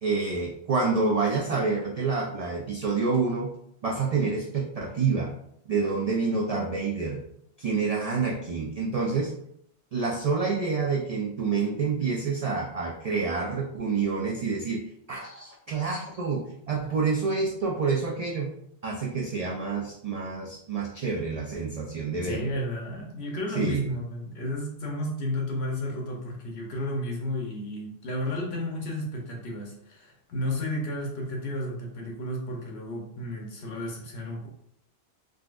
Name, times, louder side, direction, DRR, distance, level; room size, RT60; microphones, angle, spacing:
voice 1, 0.0-3.5 3.8-5.3 5.7-7.2 7.6-9.3 9.9-18.5 18.8-22.6 23.6-23.8, right 4 dB, 75° right, -1 dB, 0.3 m, -28 dB
voice 2, 22.2-34.5, left 1 dB, 65° left, -1 dB, 1.1 m, -32 dB
3.8 x 2.2 x 2.4 m, 0.72 s
omnidirectional pair, 1.2 m